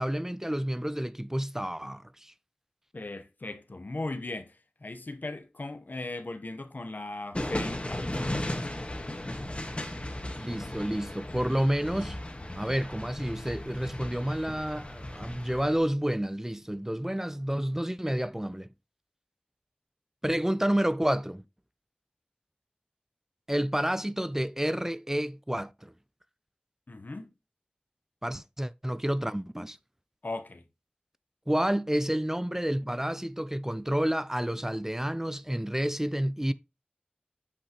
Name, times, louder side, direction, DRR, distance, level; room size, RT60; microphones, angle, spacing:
voice 1, 0.0-2.3 10.4-12.2 12.5-18.7 20.2-21.4 23.5-25.9 28.2-29.8 31.5-36.5, equal, 15° right, 0.4 m, -29 dB
voice 2, 2.9-4.5 4.8-8.3 26.9-27.3 30.2-30.6, left 2 dB, 70° left, 0.8 m, -38 dB
sound 1, 7.3-15.8, left 1 dB, 40° left, 1.4 m, -36 dB
8.4 x 5.3 x 2.9 m
wide cardioid pair, 40°, 3 cm